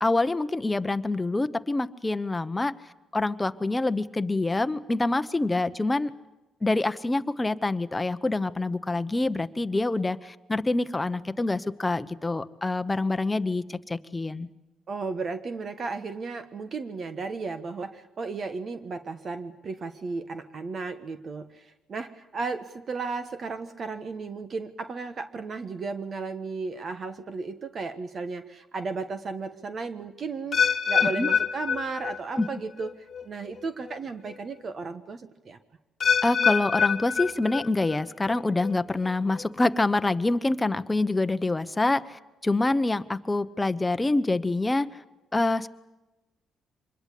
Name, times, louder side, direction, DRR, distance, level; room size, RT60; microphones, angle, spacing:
voice 1, 0.0-2.7 3.1-6.1 6.6-14.5 31.0-31.3 32.4-32.5 36.2-45.0 45.3-45.7, left 2 dB, 15° left, 12 dB, 1.0 m, -26 dB
voice 2, 14.9-35.6, right 4 dB, 45° right, 9 dB, 1.3 m, -34 dB
sound 1, 30.5-32.5 32.8-33.2 33.9-34.0 36.0-38.0 38.3-38.7 39.4-39.5, left 6 dB, 50° left, 1.5 m, -25 dB
25.5 x 21.0 x 8.5 m, 1.1 s
cardioid pair, 90°, 0 cm